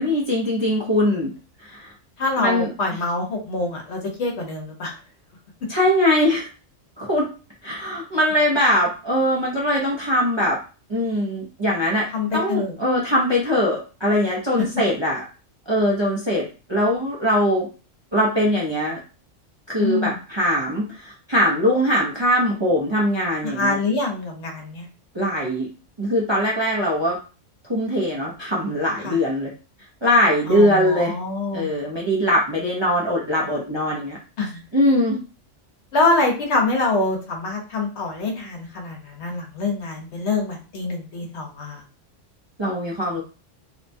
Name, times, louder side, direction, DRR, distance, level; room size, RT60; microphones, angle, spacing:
voice 1, 0.0-1.3 1.6-1.9 2.4-2.7 5.7-6.5 7.0-7.3 7.6-10.6 10.9-12.1 12.3-15.2 15.7-17.7 18.1-19.0 19.7-23.8 25.1-25.7 26.0-27.2 27.7-29.5 30.0-31.1 31.5-34.2 34.7-35.2 42.6-43.2, equal, 35° right, -4 dB, 0.4 m, -21 dB
voice 2, 2.2-5.0 12.1-12.7 19.8-20.2 23.4-24.9 29.0-29.2 30.5-31.7 34.4-34.6 35.9-41.8, left 3 dB, 65° left, 1 dB, 1.0 m, -25 dB
2.8 x 2.2 x 2.5 m, 0.34 s
omnidirectional pair, 1.3 m